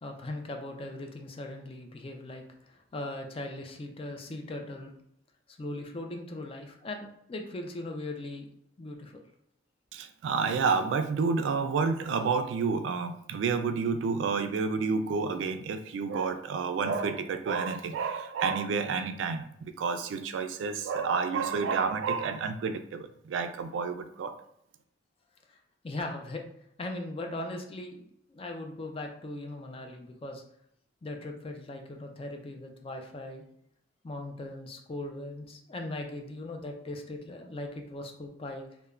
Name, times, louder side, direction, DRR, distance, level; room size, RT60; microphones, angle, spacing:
voice 1, 0.0-4.9 5.5-8.5 8.8-9.2 25.5-25.6 25.8-26.4 26.8-28.0 28.3-30.4 31.0-33.4 34.0-38.7, left 2 dB, 30° left, 3 dB, 0.4 m, -39 dB
voice 2, 9.9-24.4, right 5 dB, 80° right, 10 dB, 0.3 m, -30 dB
3.1 x 2.1 x 2.3 m, 0.73 s
head